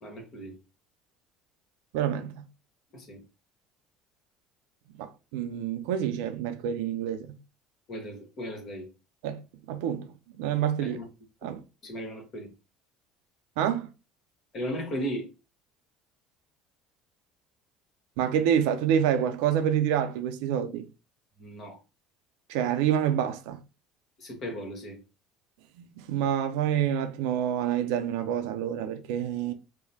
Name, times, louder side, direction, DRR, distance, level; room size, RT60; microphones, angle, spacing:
voice 1, 0.0-0.5 2.9-3.2 7.9-8.9 10.8-11.1 11.8-12.5 14.5-15.3 21.4-21.8 24.2-25.0, equal, 45° left, 1.2 m, -36 dB
voice 2, 1.9-2.4 5.0-7.3 9.2-9.4 9.7-10.1 10.4-11.0 11.4-11.6 13.6-13.9 18.2-20.9 22.5-23.6 26.0-29.5, right 9 dB, 75° right, 0.4 m, -27 dB
2.9 x 2.0 x 2.7 m
hypercardioid pair, 70°, 0 cm